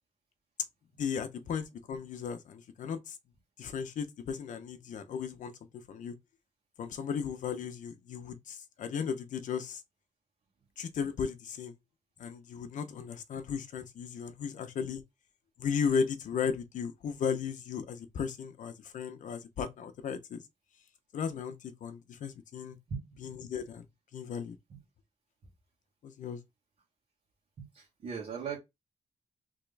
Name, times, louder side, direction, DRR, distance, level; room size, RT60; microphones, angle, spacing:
voice 1, 1.0-3.2 3.6-6.1 6.8-9.8 10.8-11.7 12.2-15.0 15.6-20.4 21.1-22.8 23.2-23.9 24.1-24.6 26.0-26.4, left 6 dB, 85° left, 0.8 m, -35 dB
voice 2, 22.9-23.2 24.7-24.8 27.6-28.6, right 6 dB, 60° right, 1.5 m, -39 dB
3.6 x 3.0 x 3.3 m
wide cardioid pair, 170°, 13 cm